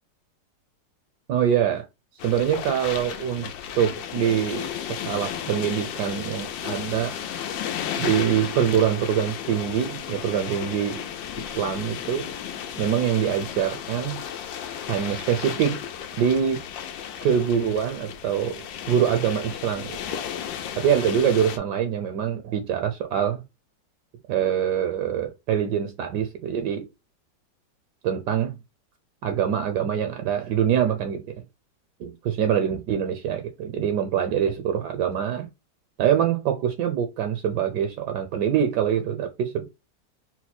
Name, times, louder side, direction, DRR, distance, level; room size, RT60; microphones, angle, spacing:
voice 1, 1.3-1.8 2.2-3.5 3.8-7.2 8.0-11.0 11.4-12.3 12.8-14.2 14.9-15.8 16.2-16.6 17.2-20.0 20.8-23.4 24.3-26.9 28.0-28.5 29.2-31.2 32.0-35.5 36.0-39.6, right 9 dB, 75° right, 1.1 m, -24 dB
sound 1, 2.2-21.6, left 9 dB, 90° left, 1.3 m, -34 dB
4.3 x 2.1 x 4.0 m
omnidirectional pair, 2.0 m